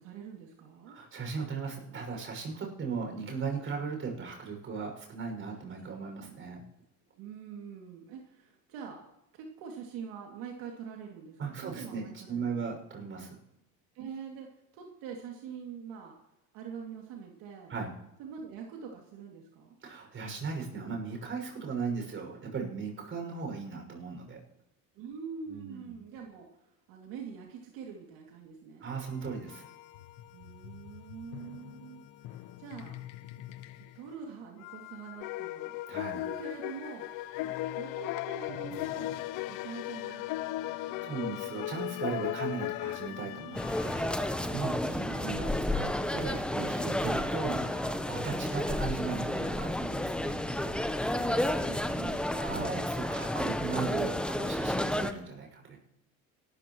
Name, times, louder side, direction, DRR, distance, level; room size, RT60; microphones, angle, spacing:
voice 1, 0.0-1.0 6.2-6.4 7.2-9.0 9.3-12.6 13.9-14.5 14.7-16.1 16.5-17.7 18.2-19.8 24.9-28.9 30.3-33.0 33.9-35.8 36.1-37.1 37.4-41.6 44.9-45.7 51.3-52.7, right 6 dB, 75° right, 0 dB, 2.7 m, -45 dB
voice 2, 0.9-6.6 11.4-13.4 17.7-17.9 19.8-24.4 25.5-25.9 28.8-29.7 35.9-36.2 40.7-50.4 52.3-55.8, right 5 dB, 40° right, 1 dB, 6.3 m, -37 dB
sound 1, 29.1-44.5, left 15 dB, 85° left, 1.0 m, -46 dB
sound 2, 35.2-43.1, left 15 dB, 65° left, 0.6 m, -36 dB
sound 3, 43.5-55.1, left 1 dB, 5° left, 0.9 m, -31 dB
25.5 x 13.5 x 3.1 m, 0.88 s
cardioid pair, 120°, 34 cm